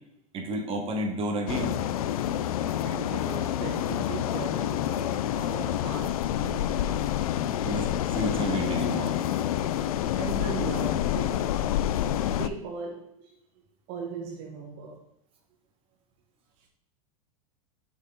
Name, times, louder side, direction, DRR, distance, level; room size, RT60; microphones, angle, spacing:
voice 1, 0.3-1.8 7.6-9.1, right 1 dB, 30° right, 2.1 m, -31 dB
sound 1, 1.5-12.5, left 11 dB, 80° left, 0.6 m, -28 dB
voice 2, 2.7-7.0 10.1-11.5 11.9-13.4 13.9-15.1 16.6-16.7, right 5 dB, 55° right, 1.6 m, -39 dB
7.1 x 6.8 x 4.0 m
hypercardioid pair, 120°, 18 cm